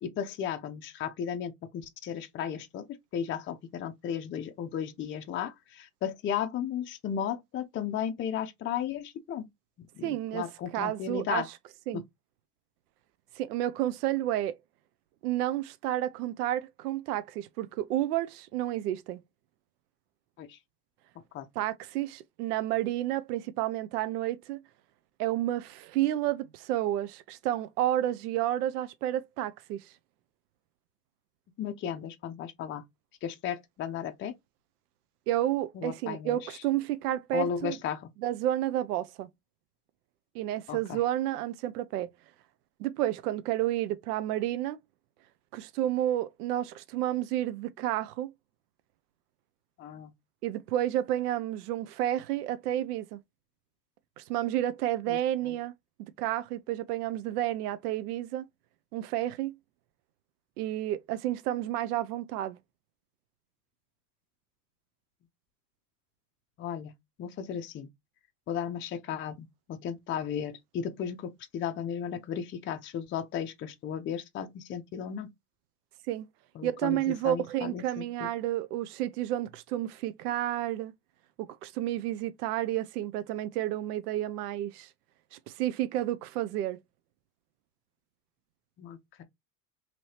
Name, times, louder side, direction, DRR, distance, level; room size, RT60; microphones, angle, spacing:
voice 1, 0.0-9.5 10.0-11.5 11.9-12.0 20.4-20.6 21.3-21.5 31.6-32.8 33.2-34.3 35.8-36.4 37.3-38.1 40.7-41.0 49.8-50.1 55.1-55.2 66.6-66.9 67.2-67.9 68.5-75.3 76.6-78.3 88.8-89.2, left 8 dB, 25° left, 0.5 m, -35 dB
voice 2, 10.0-10.4 10.7-11.4 11.9-12.0 13.4-14.6 15.2-19.2 21.6-24.6 25.2-29.8 35.3-37.8 38.2-39.3 40.3-42.1 42.8-44.8 45.5-48.3 50.4-53.2 54.2-55.7 56.2-58.4 58.9-59.5 60.6-62.6 76.1-76.3 76.6-80.9 81.4-84.9 85.3-86.8, right 13 dB, 75° right, 0.6 m, -30 dB
2.8 x 2.7 x 3.1 m
hypercardioid pair, 85°, 48 cm